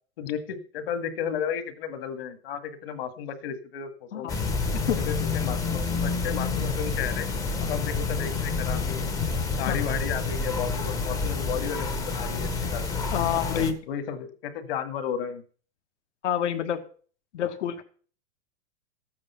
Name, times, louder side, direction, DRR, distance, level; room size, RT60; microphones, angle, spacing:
voice 1, 0.2-4.4 5.0-7.3 7.6-9.1 9.6-13.0 13.9-15.4, left 8 dB, 55° left, 8 dB, 2.1 m, -33 dB
sound 1, 4.3-13.7, left 4 dB, 10° left, 0.6 m, -28 dB
voice 2, 13.1-13.8 16.2-16.8 17.3-17.8, left 9 dB, 75° left, 5 dB, 1.8 m, -27 dB
13.5 x 8.7 x 5.7 m, 0.42 s
supercardioid pair, 165°, 35 cm